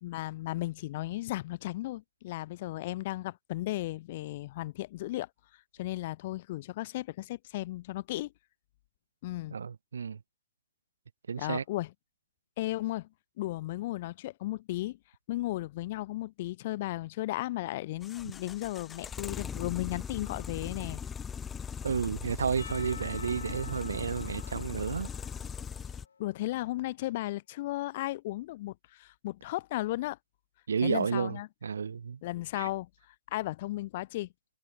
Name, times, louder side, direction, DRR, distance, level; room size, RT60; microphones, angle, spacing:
voice 1, 0.0-5.3 5.8-8.3 9.2-9.6 11.4-11.9 12.6-13.1 13.4-15.0 15.3-21.0 26.2-30.2 30.8-31.5 32.2-34.3, left 17 dB, 50° left, 1.1 m, -35 dB
voice 2, 9.5-10.2 11.3-11.6 21.8-25.1 30.7-32.2 32.5-32.7, right 6 dB, 70° right, 0.6 m, -31 dB
sound 1, 18.0-26.1, left 7 dB, 15° left, 0.6 m, -40 dB
Percussion / Church bell, 22.6-26.4, left 5 dB, 70° left, 2.8 m, -48 dB
figure-of-eight pair, 110°, 0 cm